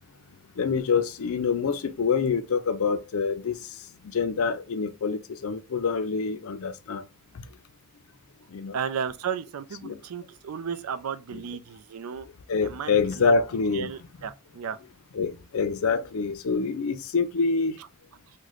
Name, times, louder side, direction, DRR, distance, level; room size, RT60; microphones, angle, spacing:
voice 1, 0.6-3.6 4.0-7.0 7.3-7.4 8.5-8.8 9.8-10.0 11.3-11.4 12.5-13.9 15.1-17.8, left 5 dB, 80° left, 0.5 m, -26 dB
voice 2, 8.7-12.3 12.6-13.3 13.7-14.8, right 7 dB, 90° right, 0.4 m, -34 dB
3.1 x 2.2 x 3.8 m
head